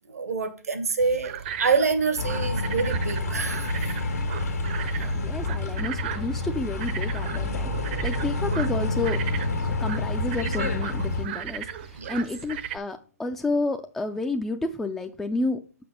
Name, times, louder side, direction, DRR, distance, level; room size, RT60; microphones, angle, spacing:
voice 1, 0.1-3.8 4.8-5.2 12.0-12.2, right 5 dB, 80° right, 1.4 m, -27 dB
sound 1, 1.0-12.8, right 9 dB, 40° right, 0.6 m, -37 dB
sound 2, 2.2-11.2, left 2 dB, 85° left, 1.5 m, -28 dB
voice 2, 5.0-9.2 9.8-15.6, left 2 dB, 5° left, 0.3 m, -30 dB
6.0 x 4.9 x 5.0 m
hypercardioid pair, 140°, 8 cm